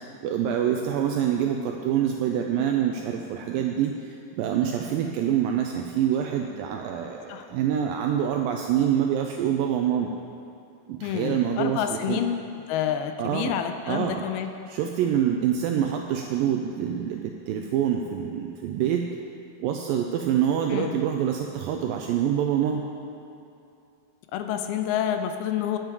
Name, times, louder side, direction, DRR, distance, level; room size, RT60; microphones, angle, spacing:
voice 1, 0.2-10.1 10.9-12.2 13.2-13.5 13.9-14.2 14.7-19.1 19.6-22.8, right 9 dB, 85° right, 2 dB, 2.0 m, -26 dB
voice 2, 11.0-12.4 12.7-14.5 20.7-21.0 24.3-25.8, left 10 dB, 85° left, 7 dB, 2.4 m, -28 dB
9.2 x 9.0 x 4.7 m, 2.6 s
omnidirectional pair, 4.5 m